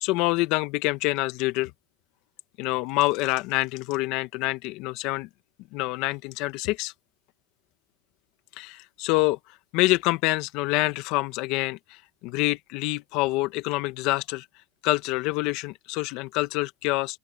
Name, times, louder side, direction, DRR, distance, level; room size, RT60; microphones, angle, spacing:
voice 1, 0.0-1.7 2.6-5.3 5.7-6.9 8.6-9.4 9.7-11.8 12.2-14.5 14.8-17.2, left 21 dB, 65° left, 1.7 m, -26 dB
open air
supercardioid pair, 110°, 0 cm